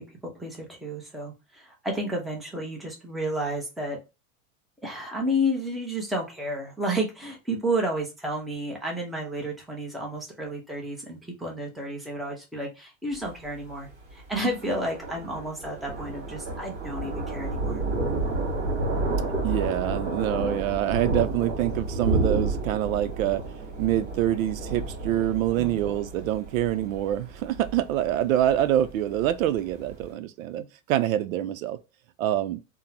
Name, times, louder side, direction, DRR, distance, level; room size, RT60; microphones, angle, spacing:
voice 1, 0.0-4.0 4.8-17.8 25.6-25.8 30.6-30.7, equal, ahead, 0.7 m, -31 dB
Thunder, 13.1-30.0, right 2 dB, 50° right, 1.8 m, -31 dB
voice 2, 19.4-23.4 23.8-30.6 30.9-31.8 32.2-32.6, right 12 dB, 85° right, 0.5 m, -25 dB
3.6 x 2.1 x 2.8 m
supercardioid pair, 140°, 40 cm